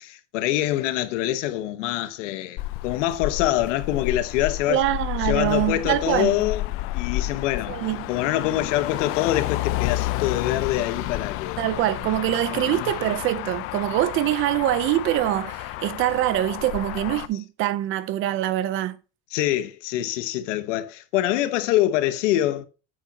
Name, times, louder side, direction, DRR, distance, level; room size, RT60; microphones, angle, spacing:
voice 1, 0.0-4.8 5.2-6.6 6.9-7.8 8.1-11.6 12.5-13.1 19.3-22.7, left 14 dB, 85° left, 1.2 m, -25 dB
Motor vehicle (road), 2.6-17.3, left 16 dB, 40° left, 0.5 m, -31 dB
voice 2, 4.7-6.4 7.7-8.1 11.6-19.0, right 14 dB, 35° right, 0.6 m, -24 dB
9.2 x 8.5 x 2.8 m
cardioid pair, 165°, 36 cm